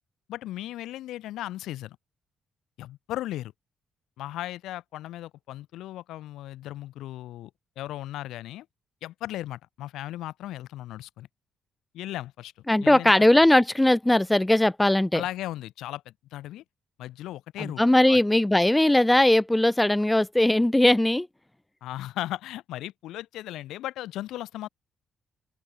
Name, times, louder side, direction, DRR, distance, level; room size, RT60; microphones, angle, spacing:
voice 1, 0.3-2.0 2.8-3.5 4.2-7.5 7.8-8.7 9.0-11.3 11.9-12.5 12.8-13.1 15.1-16.6 17.0-17.8 18.1-18.2 21.8-24.7, left 14 dB, 85° left, 0.4 m, -36 dB
voice 2, 12.7-15.2 17.6-21.3, left 1 dB, 10° left, 0.3 m, -20 dB
open air
cardioid pair, 90°, 0 cm